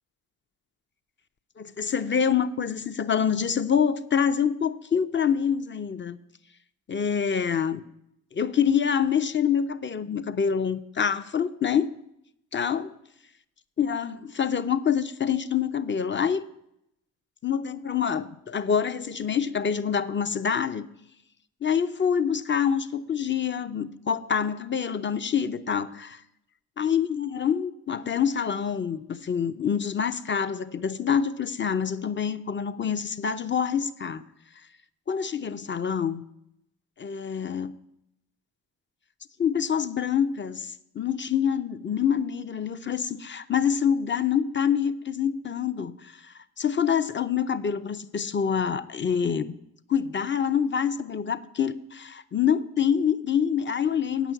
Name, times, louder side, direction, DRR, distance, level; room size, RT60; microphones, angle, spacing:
voice 1, 1.6-6.2 6.9-7.8 8.3-11.9 12.5-12.9 13.8-16.4 17.4-20.9 21.6-26.2 26.8-34.2 35.1-36.2 37.0-37.7 39.4-49.5 49.9-54.3, left 7 dB, 30° left, 12 dB, 0.7 m, -26 dB
8.8 x 6.1 x 8.1 m, 0.81 s
supercardioid pair, 60°, 40 cm